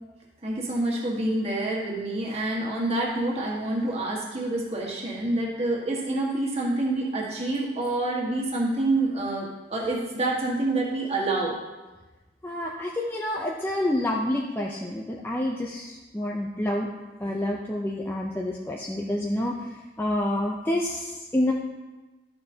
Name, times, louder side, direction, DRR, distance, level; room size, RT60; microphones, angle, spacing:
voice 1, 0.4-11.6, right 2 dB, 30° right, -3 dB, 1.6 m, -27 dB
voice 2, 12.4-16.9 17.2-19.5 20.0-21.5, left 1 dB, 10° left, -2 dB, 0.5 m, -28 dB
13.0 x 6.7 x 2.8 m, 1.2 s
head